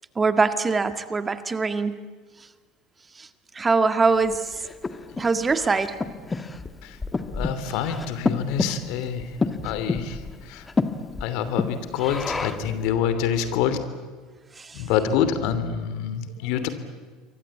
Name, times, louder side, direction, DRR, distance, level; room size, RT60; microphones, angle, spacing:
voice 1, 0.2-2.0 3.2-3.3 3.5-4.6 5.2-6.0 14.6-14.8, right 4 dB, 20° right, 10 dB, 1.8 m, -23 dB
Breathing, 4.3-12.8, left 3 dB, 20° left, 1.8 m, -30 dB
voice 2, 7.3-10.7 11.2-13.8 14.7-16.7, left 8 dB, 65° left, 11 dB, 2.9 m, -26 dB
28.0 x 23.5 x 8.6 m, 1.5 s
hypercardioid pair, 75°, 0 cm